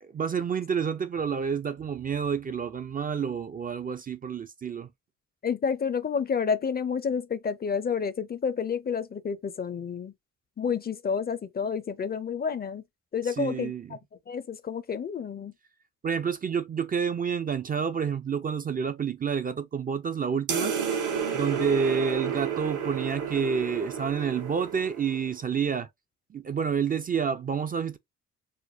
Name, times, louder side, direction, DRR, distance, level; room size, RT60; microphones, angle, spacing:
voice 1, 0.1-4.9 13.2-14.0 16.0-20.7 21.3-25.9 26.3-28.0, right 6 dB, 30° right, 0.4 m, -29 dB
voice 2, 5.4-10.1 10.6-12.8 13.1-14.0 14.3-15.5, left 6 dB, 30° left, 0.5 m, -30 dB
sound 1, 20.5-25.4, right 7 dB, 80° right, 1.5 m, -31 dB
4.2 x 2.1 x 2.6 m
cardioid pair, 90°, 30 cm